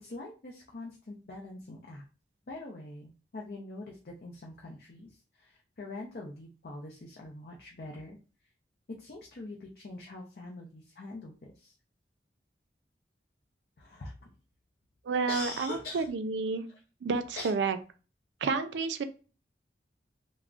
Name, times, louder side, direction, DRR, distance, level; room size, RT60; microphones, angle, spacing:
voice 1, 0.0-2.0 2.5-8.2 9.0-11.7 13.8-14.1 15.3-16.1 16.7-16.8 17.4-17.6, left 2 dB, 55° left, -1 dB, 0.5 m, -43 dB
voice 2, 15.0-16.7 17.0-17.8 18.4-19.0, right 4 dB, 80° right, 10 dB, 0.4 m, -30 dB
3.5 x 2.0 x 2.4 m, 0.34 s
head